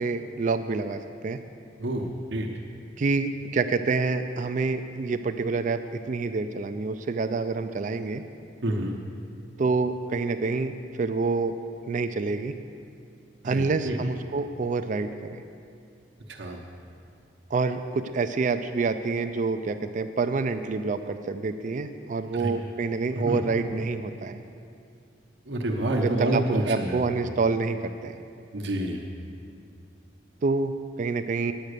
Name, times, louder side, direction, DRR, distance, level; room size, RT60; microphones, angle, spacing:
voice 1, 0.0-1.4 3.0-8.2 9.6-11.6 11.9-12.5 13.4-15.4 17.5-24.4 26.0-28.2 30.4-31.5, right 4 dB, 45° right, 9 dB, 0.4 m, -27 dB
voice 2, 1.8-2.5 8.6-9.0 13.4-14.0 16.3-16.6 22.3-22.5 23.1-23.4 25.5-27.0 28.5-29.0, right 1 dB, 70° right, 0 dB, 1.0 m, -28 dB
9.5 x 9.0 x 6.7 m, 2.4 s
head